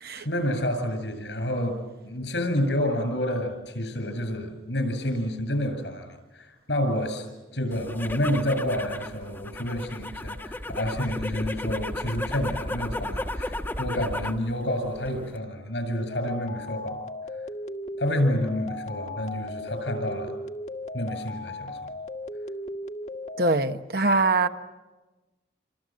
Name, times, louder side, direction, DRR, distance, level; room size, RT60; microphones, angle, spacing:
voice 1, 0.1-6.1 6.3-7.3 7.5-17.0 18.0-20.3 20.9-21.8, left 1 dB, 80° left, 8 dB, 7.5 m, -29 dB
sound 1, 7.7-14.5 14.8-15.4, left 1 dB, 15° left, 1.3 m, -34 dB
sound 2, 16.1-23.6, left 1 dB, 40° left, 1.5 m, -37 dB
voice 2, 23.4-24.5, right 3 dB, 55° right, 8 dB, 1.3 m, -23 dB
28.5 x 26.0 x 7.7 m, 1.1 s
head